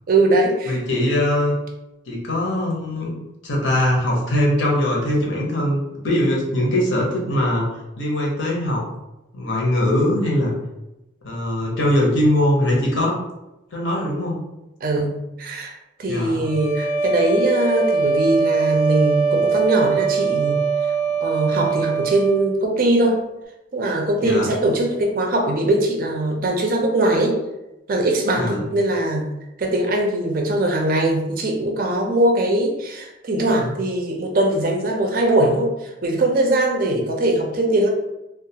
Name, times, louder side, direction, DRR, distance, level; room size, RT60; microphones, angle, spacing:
voice 1, 0.1-0.8 14.8-15.7 16.0-20.6 21.2-23.2 23.7-27.3 27.9-29.3 29.6-37.9, right 1 dB, 45° right, 1 dB, 0.4 m, -21 dB
voice 2, 0.7-1.6 2.1-3.1 3.4-7.7 8.0-8.8 9.3-10.6 11.2-13.1 13.7-14.4 16.1-16.4 24.2-24.5 28.4-28.6, left 1 dB, 70° left, -3 dB, 0.7 m, -21 dB
sound 1, 16.4-22.5, right 4 dB, 35° left, 0.4 m, -22 dB
2.3 x 2.3 x 2.7 m, 0.95 s
head